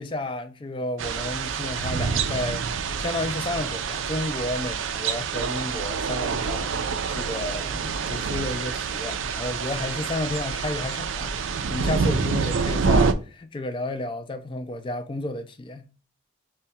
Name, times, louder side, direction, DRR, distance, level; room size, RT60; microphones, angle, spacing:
voice 1, 0.0-11.3 11.7-15.9, left 2 dB, 25° left, 0.3 m, -32 dB
sound 1, 1.0-13.1, right 5 dB, 90° right, 0.4 m, -27 dB
5.5 x 2.2 x 2.7 m
head